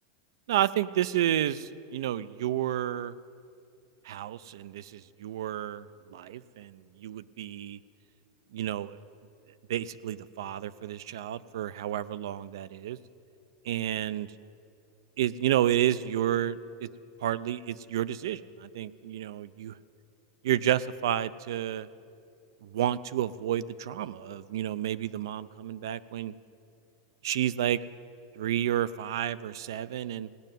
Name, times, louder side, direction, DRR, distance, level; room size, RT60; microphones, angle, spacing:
voice 1, 0.5-3.1 4.1-5.9 6.1-7.8 8.5-9.0 9.7-13.0 13.7-14.3 15.2-16.9 17.2-19.7 20.4-21.9 22.6-26.3 27.2-27.8 28.4-30.3, right 11 dB, 80° right, 18 dB, 0.4 m, -30 dB
17.5 x 6.6 x 9.1 m, 2.5 s
supercardioid pair, 165°, 2 cm